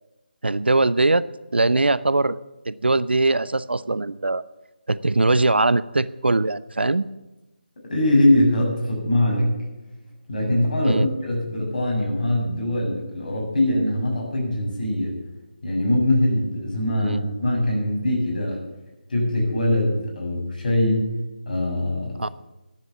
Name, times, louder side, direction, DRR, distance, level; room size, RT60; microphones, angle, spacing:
voice 1, 0.4-1.3 1.5-2.4 2.7-4.4 4.9-7.1 10.9-11.1 17.0-17.2 22.2-22.3, right 2 dB, 80° right, 17 dB, 0.6 m, -21 dB
voice 2, 7.9-9.6 10.3-15.2 15.6-18.6 19.1-21.1 21.5-22.3, left 1 dB, 50° left, -1 dB, 7.1 m, -22 dB
14.0 x 10.5 x 7.2 m, 1.0 s
figure-of-eight pair, 155°, 6 cm